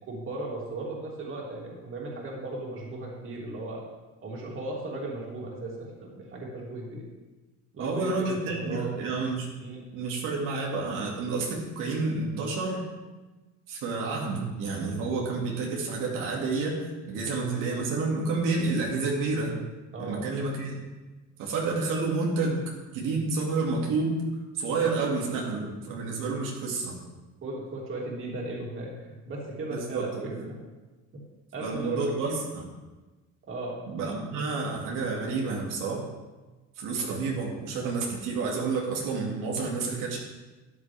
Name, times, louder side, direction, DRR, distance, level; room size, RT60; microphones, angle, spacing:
voice 1, 0.0-3.8 4.2-7.0 7.7-8.9 9.6-9.8 19.9-20.2 27.4-28.9 29.3-30.5 31.5-32.0 32.2-32.4 33.4-33.7, right 2 dB, 40° right, -3 dB, 2.9 m, -36 dB
voice 2, 7.8-9.5 9.9-12.8 13.7-19.6 20.0-20.8 21.4-22.6 22.9-24.2 24.6-27.0 29.7-30.4 31.6-32.7 33.9-36.1 36.8-40.2, right 3 dB, 85° right, -3 dB, 2.3 m, -29 dB
13.0 x 10.0 x 3.5 m, 1.2 s
cardioid pair, 145°, 31 cm